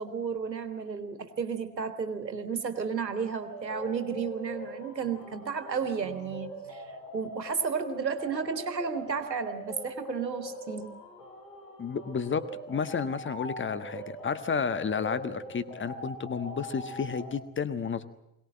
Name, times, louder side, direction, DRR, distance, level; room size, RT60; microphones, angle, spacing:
voice 1, 0.0-10.9, right 6 dB, 85° right, 10 dB, 1.6 m, -33 dB
sound 1, 3.3-17.3, equal, 70° left, 4.5 m, -42 dB
voice 2, 11.8-18.1, left 6 dB, 25° left, 12 dB, 1.4 m, -31 dB
22.5 x 18.5 x 8.7 m, 0.84 s
figure-of-eight pair, 55°, 49 cm